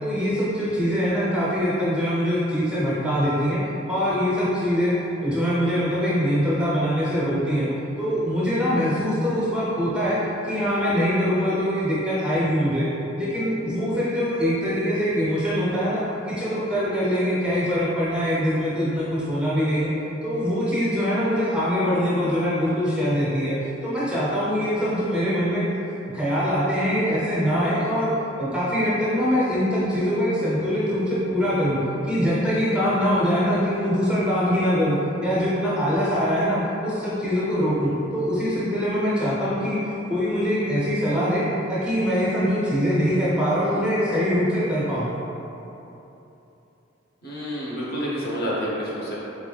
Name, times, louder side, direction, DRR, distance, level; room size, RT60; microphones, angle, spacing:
voice 1, 0.0-3.6 3.9-4.9 5.2-7.7 8.0-12.9 13.2-19.9 20.2-25.6 26.1-28.1 28.4-31.8 32.0-39.8 40.1-41.4 41.7-45.1, equal, 5° right, -9 dB, 0.5 m, -23 dB
voice 2, 47.2-49.1, equal, 50° left, -6 dB, 0.7 m, -28 dB
4.1 x 3.2 x 2.3 m, 3.0 s
head